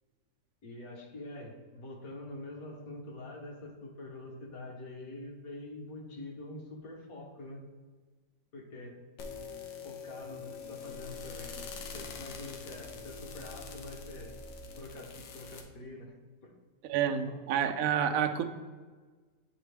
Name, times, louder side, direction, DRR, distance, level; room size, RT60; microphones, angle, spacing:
voice 1, 0.6-7.6 8.5-9.0 9.8-14.4 14.8-16.1 16.4-16.6 17.3-17.4, left 2 dB, 55° left, -1 dB, 1.5 m, -45 dB
sound 1, 9.2-15.6, left 4 dB, 80° left, 1.5 m, -44 dB
voice 2, 16.9-18.4, right 8 dB, 75° right, 5 dB, 0.8 m, -29 dB
9.0 x 4.0 x 3.4 m, 1.4 s
omnidirectional pair, 2.0 m